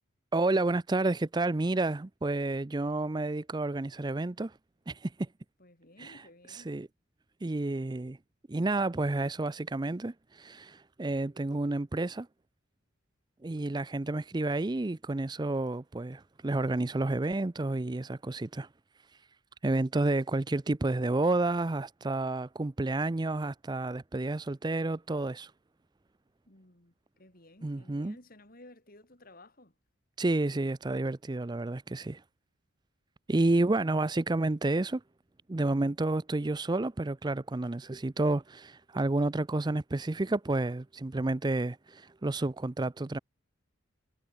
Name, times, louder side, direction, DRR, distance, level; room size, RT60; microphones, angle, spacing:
voice 1, 0.3-4.6 4.9-5.3 6.0-6.2 6.5-6.9 7.4-8.2 8.5-12.3 13.4-18.7 19.6-25.5 27.6-28.2 30.2-32.2 33.3-35.0 35.5-43.2, right 2 dB, 20° right, 0.5 m, -30 dB
voice 2, 5.6-6.8 26.4-29.7, left 1 dB, 45° left, 4.8 m, -56 dB
head